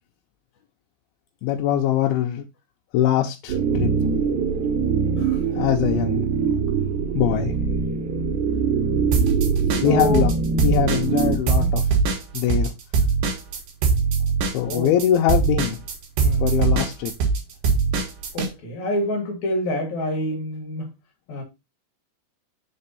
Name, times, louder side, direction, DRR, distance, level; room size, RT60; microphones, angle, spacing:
voice 1, 1.4-2.4 2.9-3.9 5.6-6.2 7.2-7.5 9.8-11.9 12.3-12.7 14.5-15.8 16.4-17.1, left 11 dB, 85° left, 2.6 m, -22 dB
sound 1, 3.5-11.4, right 5 dB, 80° right, 1.7 m, -23 dB
sound 2, 9.1-10.3 10.6-18.5, right 5 dB, 65° right, 2.9 m, -21 dB
voice 2, 9.8-10.3 11.5-11.8 14.6-14.9 16.2-16.5 18.3-20.9 21.3-21.4, equal, 60° left, 2.2 m, -27 dB
6.0 x 4.3 x 4.0 m
omnidirectional pair, 4.5 m